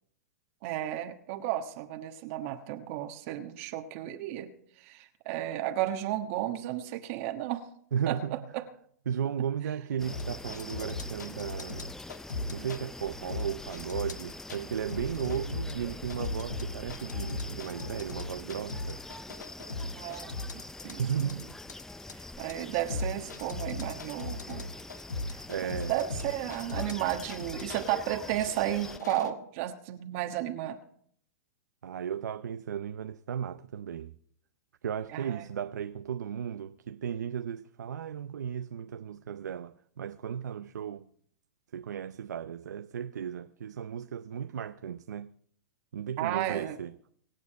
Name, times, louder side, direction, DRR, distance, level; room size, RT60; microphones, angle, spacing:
voice 1, 0.6-4.5 4.8-7.6 8.1-8.6 19.9-20.3 20.8-21.4 22.1-24.7 25.3-30.8 35.1-35.5 46.2-46.8, right 13 dB, 50° right, 1.3 m, -33 dB
voice 2, 7.9-8.4 9.1-11.9 12.5-19.0 20.8-21.5 25.5-25.9 31.8-34.1 34.8-41.1 41.7-45.3 45.9-46.9, right 8 dB, 80° right, 0.6 m, -35 dB
sound 1, 10.0-29.0, left 2 dB, 5° left, 0.5 m, -44 dB
sound 2, 10.1-12.8 13.3-14.6 14.9-27.9 28.5-29.3, left 2 dB, 85° left, 1.5 m, -37 dB
24.5 x 8.3 x 4.6 m
hypercardioid pair, 120°, 9 cm